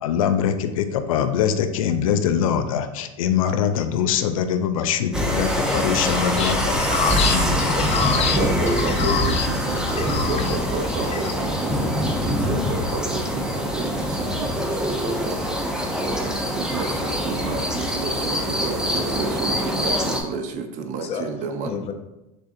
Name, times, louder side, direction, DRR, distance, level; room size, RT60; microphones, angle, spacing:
voice 1, 0.0-7.0 7.3-7.9, left 8 dB, 85° left, 9 dB, 0.4 m, -23 dB
sound 1, 5.1-20.2, equal, 5° right, 0.7 m, -24 dB
voice 2, 5.4-9.5 9.7-10.6 10.9-11.3 21.0-21.3 21.7-21.9, left 7 dB, 35° left, 6 dB, 0.6 m, -28 dB
voice 3, 8.4-15.8 16.6-21.8, right 4 dB, 45° right, 6 dB, 0.6 m, -31 dB
6.6 x 2.4 x 2.6 m, 0.93 s
hypercardioid pair, 100°, 17 cm